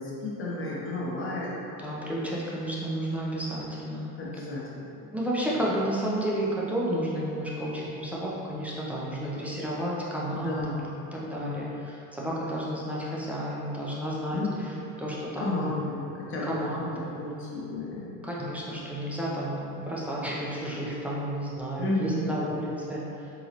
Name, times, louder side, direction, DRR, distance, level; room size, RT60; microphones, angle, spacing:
voice 1, 0.0-1.5 4.2-5.1 10.3-10.9 11.3-11.7 14.3-14.8 15.4-16.5 16.8-16.9 17.1-18.2 21.8-22.4, left 2 dB, 35° left, -6 dB, 0.7 m, -33 dB
voice 2, 1.8-4.1 5.1-10.7 11.1-15.8 16.4-16.8 17.1-17.2 18.2-23.3, equal, 5° right, -6 dB, 0.3 m, -31 dB
3.9 x 3.0 x 2.8 m, 2.8 s
cardioid pair, 165°, 38 cm